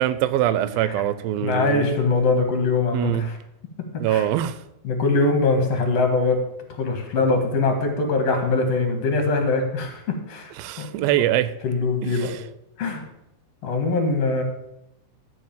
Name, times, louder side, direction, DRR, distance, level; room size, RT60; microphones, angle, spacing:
voice 1, 0.0-1.9 2.9-3.3 4.0-4.6 10.6-11.5 12.0-12.4, right 12 dB, 90° right, 14 dB, 2.4 m, -23 dB
voice 2, 1.4-3.4 3.9-4.3 4.8-6.4 6.8-10.5 10.8-10.9 11.6-12.3 12.8-13.0 13.6-14.4, left 3 dB, 50° left, 5 dB, 2.3 m, -22 dB
12.5 x 5.3 x 7.2 m, 0.87 s
omnidirectional pair, 4.1 m